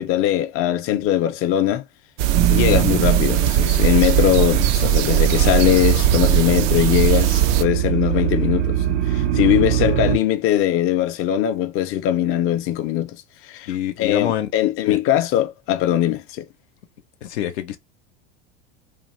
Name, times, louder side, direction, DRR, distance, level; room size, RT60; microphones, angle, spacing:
voice 1, 0.0-1.8 2.5-13.1 13.4-16.4, left 12 dB, 45° left, 0.5 m, -21 dB
sound 1, 2.2-7.6, right 11 dB, 60° right, 0.5 m, -18 dB
sound 2, 2.3-3.8 4.0-10.2, right 10 dB, 85° right, 0.9 m, -23 dB
voice 2, 13.7-14.5 14.9-15.0 17.2-17.8, left 11 dB, 85° left, 0.6 m, -27 dB
2.5 x 2.3 x 3.0 m
hypercardioid pair, 95°, 32 cm